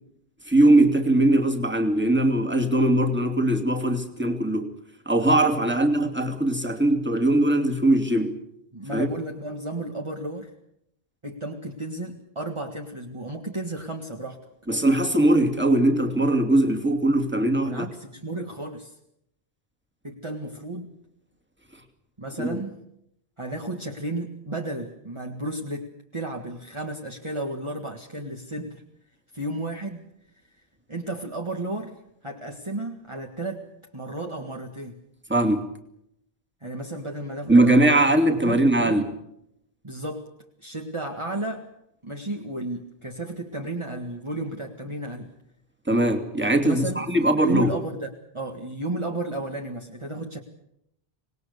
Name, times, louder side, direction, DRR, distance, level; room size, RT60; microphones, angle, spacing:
voice 1, 0.5-4.7 5.1-8.4 8.9-9.1 14.7-17.9 22.4-22.6 35.3-35.7 37.5-39.1 45.9-47.7, right 1 dB, 10° right, 2.7 m, -20 dB
voice 2, 8.7-10.5 11.2-14.4 17.7-18.9 20.0-20.9 22.2-22.8 23.4-28.8 29.3-30.1 30.9-32.0 32.2-33.6 33.9-35.0 36.6-39.0 39.8-40.3 40.6-41.7 42.0-45.3 46.6-50.4, right 2 dB, 30° right, 1.9 m, -33 dB
26.0 x 20.0 x 6.7 m
omnidirectional pair, 1.1 m